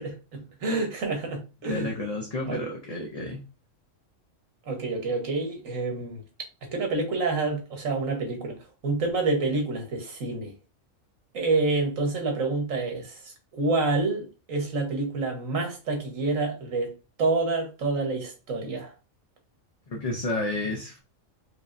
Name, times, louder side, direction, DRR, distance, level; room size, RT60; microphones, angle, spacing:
voice 1, 0.0-2.0 2.5-2.6 4.7-6.2 6.6-10.5 11.3-16.9 17.2-18.9, right 3 dB, 80° right, 1.5 m, -28 dB
voice 2, 1.7-3.4 19.9-21.0, left 2 dB, 40° left, 0.6 m, -31 dB
4.7 x 2.8 x 2.5 m
omnidirectional pair, 1.4 m